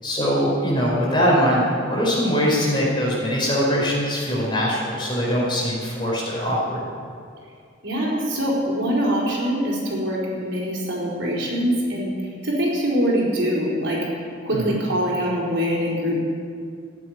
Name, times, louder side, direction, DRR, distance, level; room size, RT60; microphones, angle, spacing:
voice 1, 0.0-6.8 14.5-14.7, equal, 25° left, -4 dB, 4.6 m, -22 dB
voice 2, 7.8-12.1 12.4-14.0 14.4-16.2, equal, 65° right, -4 dB, 4.3 m, -23 dB
15.5 x 8.5 x 9.3 m, 2.2 s
head